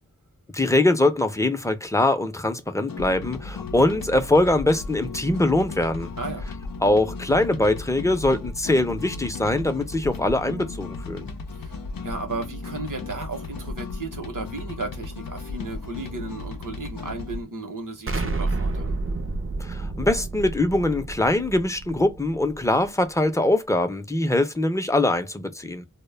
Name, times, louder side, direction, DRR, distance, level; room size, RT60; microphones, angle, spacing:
voice 1, 0.5-6.1 6.8-11.3 19.6-25.8, left 2 dB, 10° left, 0.5 m, -22 dB
sound 1, 2.9-17.4, left 4 dB, 85° left, 0.5 m, -35 dB
voice 2, 11.5-19.0, right 3 dB, 65° right, 0.8 m, -34 dB
Explosion, 18.1-22.9, right 2 dB, 40° right, 0.5 m, -30 dB
2.1 x 2.1 x 3.2 m
wide cardioid pair, 40°, 33 cm